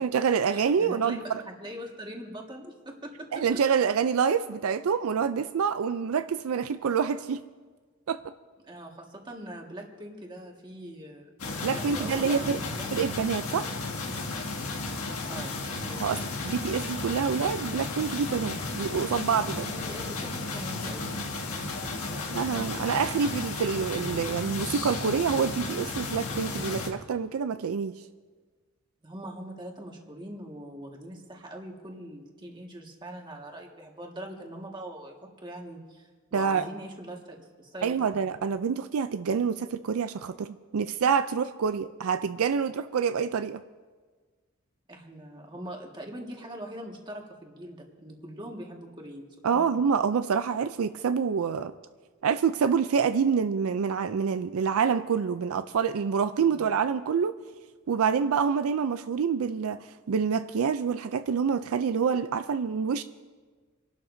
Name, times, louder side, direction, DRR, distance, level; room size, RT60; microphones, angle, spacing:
voice 1, 0.0-1.4 3.3-7.4 8.1-8.2 11.6-12.6 12.9-13.8 16.0-19.5 22.3-27.9 36.3-36.7 37.8-43.6 49.4-51.7 52.2-57.3 57.9-63.0, right 6 dB, 75° right, 11 dB, 0.4 m, -27 dB
voice 2, 0.5-3.6 8.6-11.3 11.6-13.1 15.3-15.6 15.8-16.3 19.5-22.8 29.0-38.3 44.9-49.7 56.4-56.7, right 1 dB, 20° right, 0 dB, 1.7 m, -42 dB
sound 1, 11.4-26.9, left 3 dB, 80° left, 1.7 m, -34 dB
29.0 x 12.0 x 2.7 m, 1.4 s
head